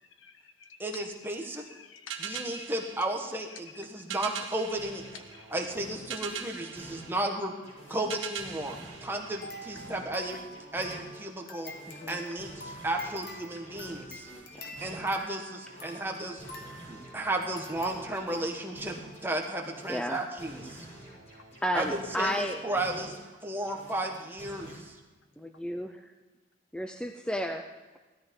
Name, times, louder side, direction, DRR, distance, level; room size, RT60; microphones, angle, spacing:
voice 1, 0.2-0.8 1.4-2.7 3.5-3.6 4.0-4.1 5.3-5.4 22.0-22.2, left 4 dB, 80° left, 7 dB, 1.3 m, -50 dB
voice 2, 0.8-1.6 2.2-5.0 5.5-7.5 7.9-10.4 10.7-11.7 12.1-14.3 14.8-16.4 16.9-19.0 19.2-20.9 21.7-25.0, right 1 dB, 10° right, 1 dB, 1.4 m, -34 dB
sound 1, 2.1-10.0, right 7 dB, 85° right, 1.3 m, -42 dB
sound 2, 4.8-7.3 7.6-11.3 11.6-15.3 15.6-19.3 19.6-23.3 23.6-24.8, right 1 dB, 35° left, 6.1 m, -49 dB
sound 3, 9.4-18.5 19.0-19.1 19.4-19.5, left 1 dB, 50° left, 1.6 m, -47 dB
voice 3, 11.9-12.2 15.2-15.4 19.9-20.2 21.6-22.6 25.4-26.1 26.7-27.7, equal, 5° left, 6 dB, 0.5 m, -32 dB
16.5 x 13.0 x 5.4 m, 1.3 s
head